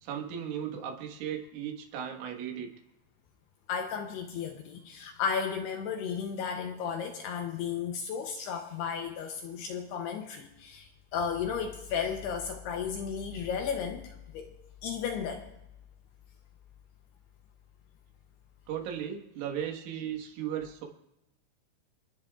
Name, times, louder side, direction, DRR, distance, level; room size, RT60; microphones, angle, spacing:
voice 1, 0.0-2.7 18.7-20.9, right 9 dB, 85° right, 2 dB, 4.1 m, -36 dB
voice 2, 3.7-14.5 14.8-15.5, left 7 dB, 75° left, 4 dB, 2.5 m, -34 dB
30.0 x 10.0 x 2.4 m, 0.89 s
omnidirectional pair, 5.4 m